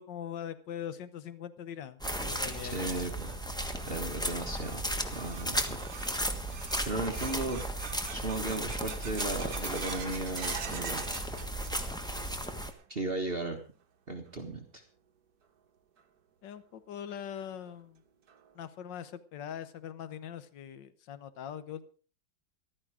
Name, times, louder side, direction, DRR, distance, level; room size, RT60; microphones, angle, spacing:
voice 1, 0.0-3.0 16.4-18.0 18.5-21.9, left 9 dB, 70° left, 13 dB, 1.7 m, -42 dB
sound 1, 2.0-12.7, right 1 dB, 5° left, 1.0 m, -35 dB
sound 2, 2.3-12.2 12.4-13.0 13.4-13.5 14.3-14.4 16.0-16.1 16.5-16.6 17.1-17.2 17.7-17.8 18.3-18.7, right 7 dB, 55° right, 1.6 m, -46 dB
voice 2, 2.6-3.3 3.9-5.8 6.8-7.7 8.1-11.1 12.9-13.6 14.1-14.6, right 2 dB, 30° right, 3 dB, 1.7 m, -36 dB
14.5 x 12.5 x 4.9 m, 0.39 s
omnidirectional pair, 2.0 m